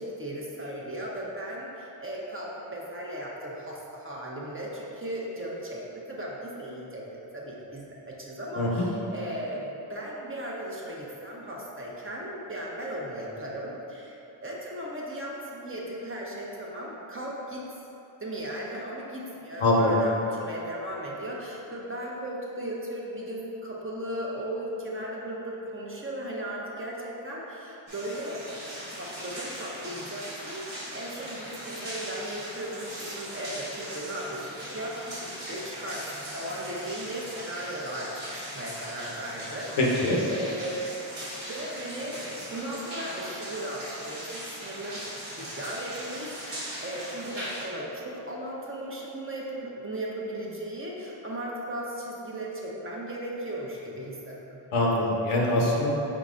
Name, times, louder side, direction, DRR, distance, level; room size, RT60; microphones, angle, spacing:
voice 1, 0.0-17.7 18.2-28.4 28.9-39.8 40.3-40.9 41.5-45.0 45.4-54.6, right 1 dB, 25° right, -4 dB, 0.8 m, -36 dB
voice 2, 8.6-8.9 19.6-20.0 39.8-40.2 54.7-55.9, left 1 dB, 80° left, -3 dB, 0.8 m, -23 dB
sound 1, 27.9-47.6, right 1 dB, 75° right, 1.4 m, -39 dB
4.3 x 3.8 x 2.5 m, 2.9 s
cardioid pair, 45°, 49 cm